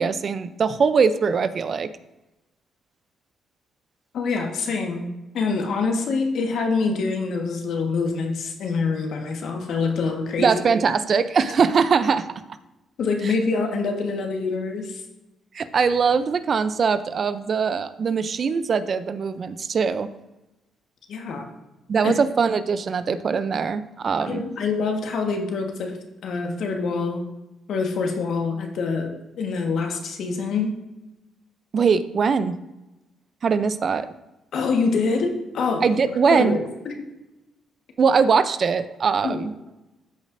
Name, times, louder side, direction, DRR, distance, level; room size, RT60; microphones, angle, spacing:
voice 1, 0.0-1.9 10.4-12.3 15.5-20.1 21.9-24.4 31.7-32.6 33.4-34.1 35.8-36.6 38.0-39.5, right 5 dB, 50° right, 12 dB, 0.5 m, -21 dB
voice 2, 4.1-5.1 5.3-10.5 13.0-15.0 21.1-21.5 22.0-22.1 24.3-27.2 27.7-30.8 34.5-35.9 36.3-37.1 39.2-39.4, left 4 dB, 70° left, 3 dB, 1.5 m, -25 dB
13.5 x 5.1 x 2.6 m, 0.99 s
cardioid pair, 90°, 0 cm